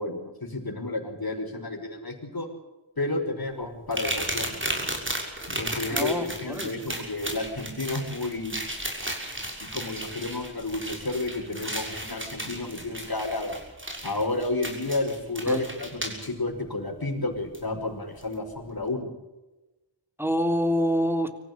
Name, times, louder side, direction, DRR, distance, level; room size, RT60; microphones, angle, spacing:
voice 1, 0.0-2.5 3.0-4.9 5.5-8.6 9.6-13.6 14.0-19.1, left 2 dB, 50° left, 3 dB, 5.8 m, -31 dB
sound 1, 3.9-16.3 17.5-17.6 18.2-18.3, right 1 dB, 25° right, 6.5 m, -34 dB
voice 2, 5.9-6.7 15.5-15.6 20.2-21.3, equal, 5° right, 6 dB, 3.2 m, -26 dB
25.5 x 15.0 x 8.5 m, 1.1 s
wide cardioid pair, 75°, 47 cm